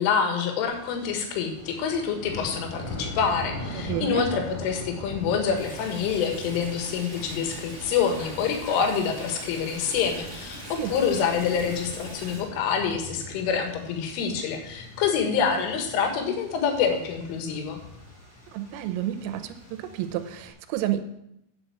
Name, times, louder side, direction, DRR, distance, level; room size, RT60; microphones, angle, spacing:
voice 1, 0.0-17.8, left 6 dB, 75° left, 4 dB, 4.0 m, -26 dB
sound 1, 0.6-20.5, left 2 dB, 10° left, 3.2 m, -42 dB
voice 2, 3.7-4.2 10.8-10.9 18.5-21.0, right 12 dB, 85° right, 8 dB, 3.3 m, -30 dB
Stream, 5.5-12.4, right 1 dB, 5° right, 2.9 m, -42 dB
10.0 x 6.4 x 7.5 m, 0.81 s
omnidirectional pair, 5.9 m